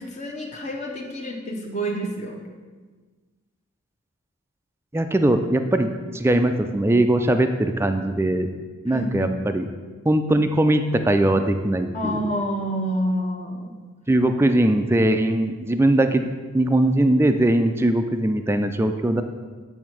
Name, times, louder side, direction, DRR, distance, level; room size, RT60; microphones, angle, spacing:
voice 1, 0.0-2.4 8.9-9.3 11.9-13.7, equal, 35° left, -1 dB, 0.9 m, -28 dB
voice 2, 4.9-8.5 8.8-9.7 10.0-12.2 14.1-16.3 16.5-19.2, right 1 dB, 10° right, 7 dB, 0.3 m, -20 dB
8.4 x 3.5 x 6.1 m, 1.4 s
head